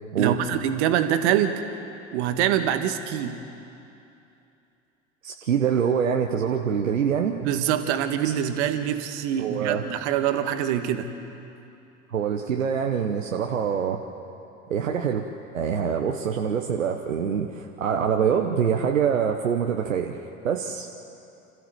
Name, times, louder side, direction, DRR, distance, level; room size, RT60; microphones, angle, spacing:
voice 1, 0.2-1.6 2.1-3.4 7.4-11.1, right 10 dB, 60° right, 8 dB, 1.6 m, -24 dB
voice 2, 5.2-7.3 8.2-8.3 9.4-9.8 12.1-14.0 14.7-15.3 15.5-20.2 20.4-20.9, right 7 dB, 80° right, 3 dB, 1.0 m, -25 dB
27.5 x 14.5 x 7.9 m, 2.8 s
figure-of-eight pair, 70°, 38 cm